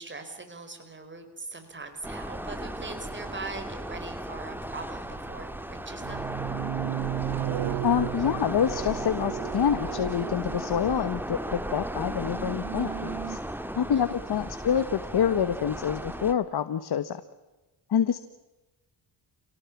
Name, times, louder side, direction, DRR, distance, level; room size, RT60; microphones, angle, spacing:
voice 1, 0.0-6.3 13.9-14.2, right 3 dB, 25° right, 7 dB, 4.8 m, -41 dB
sound 1, 2.0-16.3, right 1 dB, 5° right, 2.0 m, -36 dB
sound 2, 2.8-2.9 4.7-5.4 5.7-11.2 12.0-13.4, right 14 dB, 70° right, 0.9 m, -35 dB
voice 2, 7.8-13.4 13.7-17.2 17.9-18.2, left 8 dB, 55° left, 12 dB, 1.4 m, -27 dB
28.5 x 18.5 x 8.6 m, 1.1 s
cardioid pair, 95°, 45 cm